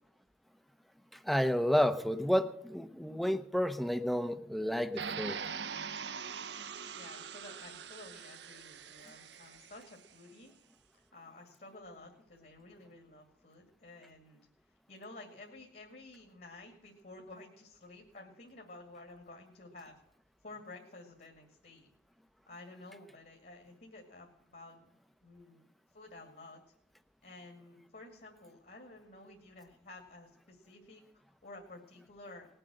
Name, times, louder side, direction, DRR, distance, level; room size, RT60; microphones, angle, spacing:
voice 1, 1.1-5.4, equal, ahead, 11 dB, 0.7 m, -31 dB
sound 1, 5.0-10.0, right 6 dB, 70° right, 0.8 m, -42 dB
voice 2, 6.9-10.5 11.1-14.5 14.9-20.0 20.4-21.9 22.5-24.9 25.2-25.6 25.9-26.6 27.2-32.5, left 2 dB, 50° left, 2 dB, 2.3 m, -52 dB
19.5 x 7.8 x 7.7 m, 0.76 s
head